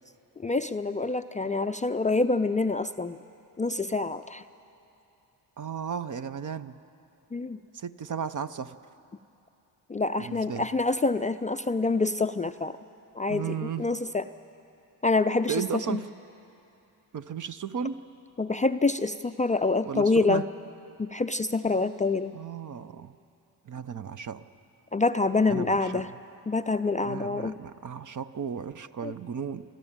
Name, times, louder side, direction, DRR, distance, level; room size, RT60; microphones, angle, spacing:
voice 1, 0.4-3.2 3.6-4.4 7.3-7.6 9.9-12.8 13.2-14.2 15.0-15.6 15.9-16.0 18.4-20.4 21.0-22.3 24.9-26.1 26.5-27.5 29.0-29.1, left 3 dB, 20° left, 9 dB, 0.4 m, -26 dB
voice 2, 5.6-6.8 7.7-8.8 10.2-10.7 13.3-13.8 15.5-16.1 17.1-18.0 19.9-20.4 22.3-23.1 23.7-24.4 25.5-26.2 27.0-29.6, right 7 dB, 45° right, 12 dB, 0.8 m, -34 dB
28.5 x 12.5 x 8.8 m, 2.8 s
cardioid pair, 70°, 43 cm